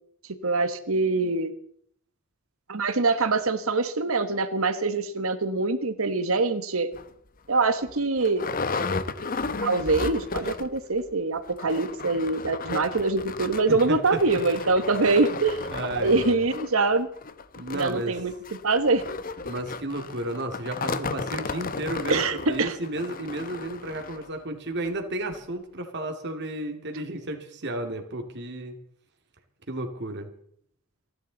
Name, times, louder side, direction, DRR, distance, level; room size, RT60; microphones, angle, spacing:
voice 1, 0.4-1.5 2.7-6.9 7.5-8.5 9.6-15.6 15.9-17.1 17.7-18.3 18.6-19.0 22.1-22.7, right 3 dB, 70° right, 10 dB, 1.3 m, -24 dB
sound 1, 6.9-7.1 7.6-7.7 7.9-10.8 11.1-11.2 11.5-24.3 24.8-24.9 25.3-25.4, left 4 dB, 40° left, 0.8 m, -34 dB
voice 2, 13.7-14.2 15.0-15.4 15.7-16.4 17.6-18.2 19.4-28.8 29.7-30.3, right 1 dB, 50° right, 4 dB, 2.4 m, -33 dB
29.5 x 11.5 x 4.0 m, 0.66 s
head